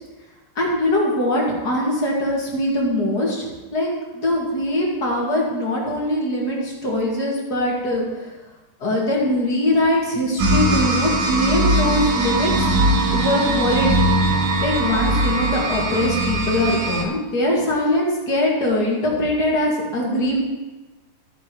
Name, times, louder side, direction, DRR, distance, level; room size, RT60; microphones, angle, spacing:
voice 1, 0.6-3.4 3.7-8.3 8.8-12.7 13.1-14.2 14.6-20.4, left 1 dB, 50° left, -3 dB, 2.7 m, -22 dB
sound 1, 10.4-17.0, right 1 dB, 75° right, 1.9 m, -20 dB
14.0 x 9.1 x 3.1 m, 1.2 s
omnidirectional pair, 2.3 m